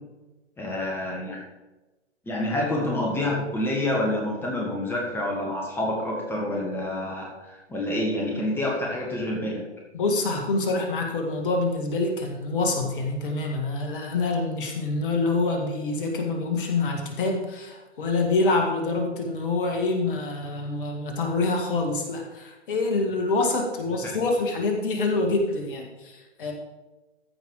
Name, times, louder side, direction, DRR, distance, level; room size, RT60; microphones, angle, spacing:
voice 1, 0.6-1.4 2.2-9.6 24.0-24.2, left 1 dB, 5° left, -2 dB, 1.5 m, -28 dB
voice 2, 9.9-26.5, left 3 dB, 50° left, 2 dB, 2.0 m, -26 dB
14.0 x 5.5 x 4.7 m, 1.1 s
figure-of-eight pair, 120°, 35 cm